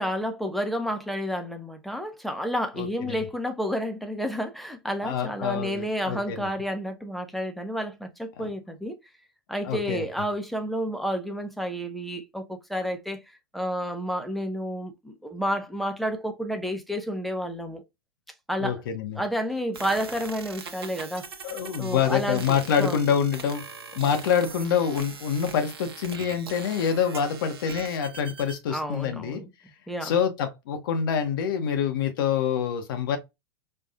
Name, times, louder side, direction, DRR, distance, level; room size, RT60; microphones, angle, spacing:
voice 1, 0.0-9.0 9.5-13.2 13.5-17.8 18.5-18.8 19.1-21.3 21.8-23.1 28.7-29.5 29.9-30.1, equal, ahead, 0.5 m, -30 dB
voice 2, 2.8-3.2 5.0-6.5 8.4-8.5 9.6-10.0 18.6-19.2 21.4-23.7 23.9-29.4 30.0-33.2, left 7 dB, 60° left, 0.6 m, -26 dB
sound 1, 19.7-28.6, right 5 dB, 75° right, 0.7 m, -41 dB
4.4 x 2.3 x 2.3 m
figure-of-eight pair, 90°, 13 cm